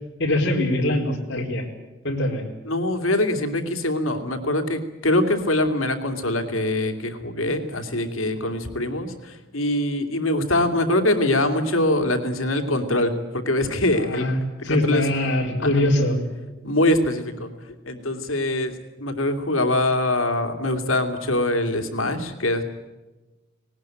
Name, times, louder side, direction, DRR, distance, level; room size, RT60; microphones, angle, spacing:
voice 1, 0.2-1.6 2.0-2.4 13.9-14.4 14.6-16.2, left 1 dB, 55° left, -1 dB, 4.5 m, -22 dB
voice 2, 2.6-14.2 14.7-15.0 15.6-15.8 16.6-17.5 17.9-18.7 19.0-22.6, left 1 dB, 85° left, 6 dB, 2.7 m, -23 dB
19.0 x 19.0 x 9.2 m, 1.1 s
head